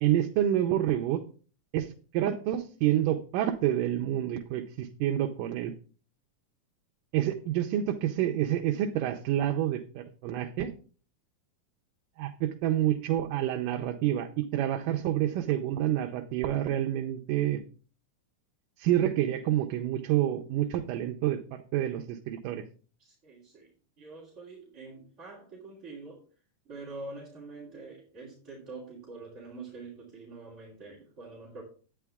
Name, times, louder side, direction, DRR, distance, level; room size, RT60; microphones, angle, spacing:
voice 1, 0.0-1.2 1.7-5.7 7.1-10.7 12.2-17.6 18.8-22.6, right 12 dB, 85° right, 5 dB, 2.4 m, -28 dB
voice 2, 23.0-26.2 26.6-31.6, right 3 dB, 20° right, -7 dB, 3.0 m, -45 dB
11.0 x 9.2 x 3.5 m, 0.39 s
omnidirectional pair, 3.8 m